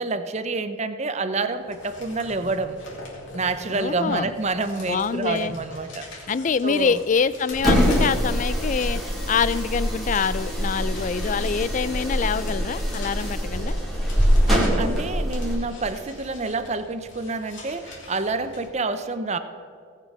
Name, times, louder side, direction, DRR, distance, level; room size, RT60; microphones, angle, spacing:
voice 1, 0.0-2.8 3.3-6.1 6.6-7.0 14.5-19.4, right 3 dB, 30° right, 10 dB, 0.6 m, -28 dB
sound 1, 1.4-18.7, left 2 dB, 60° left, 3.1 m, -44 dB
voice 2, 3.7-4.3 4.9-5.6 6.3-9.0 9.3-13.8, left 6 dB, 35° left, 16 dB, 0.3 m, -25 dB
sound 2, 7.5-15.6, equal, ahead, 2.2 m, -24 dB
17.5 x 6.8 x 6.0 m, 2.3 s
head